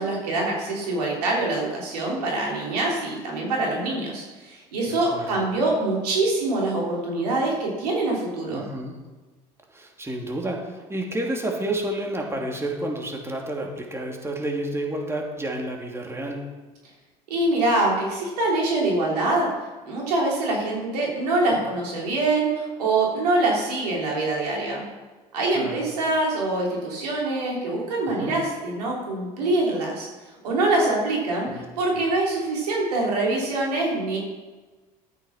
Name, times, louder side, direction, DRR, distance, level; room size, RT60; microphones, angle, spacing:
voice 1, 0.0-8.6 17.3-19.5 19.8-24.8 25.3-30.1 30.4-34.2, right 2 dB, 80° right, -2 dB, 3.4 m, -24 dB
voice 2, 4.9-5.4 8.5-9.0 9.7-16.4 21.5-21.6 25.5-25.8 28.1-28.3 31.5-31.6 31.9-32.0, right 1 dB, 15° right, 0 dB, 2.8 m, -30 dB
12.5 x 8.7 x 5.8 m, 1.2 s
hypercardioid pair, 70°, 20 cm